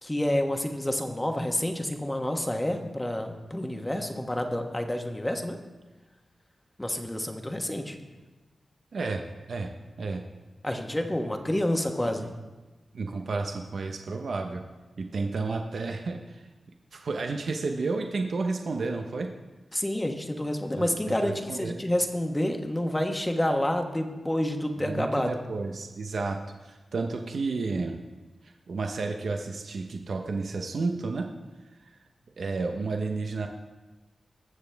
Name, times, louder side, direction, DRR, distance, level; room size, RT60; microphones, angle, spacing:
voice 1, 0.0-5.6 6.8-8.0 10.6-12.3 19.7-25.3, left 1 dB, 15° left, 4 dB, 1.3 m, -29 dB
voice 2, 8.9-9.7 10.0-10.2 12.2-12.3 12.9-14.6 15.0-16.5 16.9-19.3 20.8-21.7 24.8-28.0 28.4-31.3 31.9-32.0 32.4-33.5, right 3 dB, 70° right, 3 dB, 0.8 m, -31 dB
20.5 x 7.1 x 3.4 m, 1.2 s
cardioid pair, 65°, 0 cm